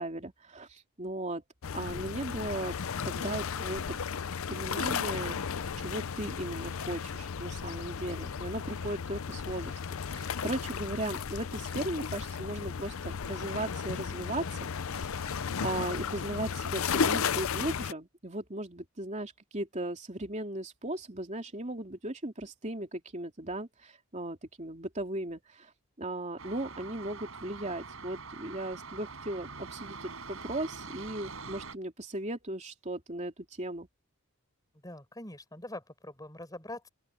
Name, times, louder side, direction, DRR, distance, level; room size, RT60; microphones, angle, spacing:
voice 1, 0.0-1.4 1.7-2.8 3.0-4.0 4.5-5.4 5.8-9.8 10.1-25.7 26.0-33.9, right 1 dB, 30° right, 3.1 m, -37 dB
sound 1, 1.6-17.9, left 6 dB, 65° left, 0.6 m, -34 dB
sound 2, 26.4-31.7, right 4 dB, 65° right, 5.4 m, -44 dB
voice 2, 34.8-36.9, left 1 dB, 15° left, 5.9 m, -43 dB
open air
head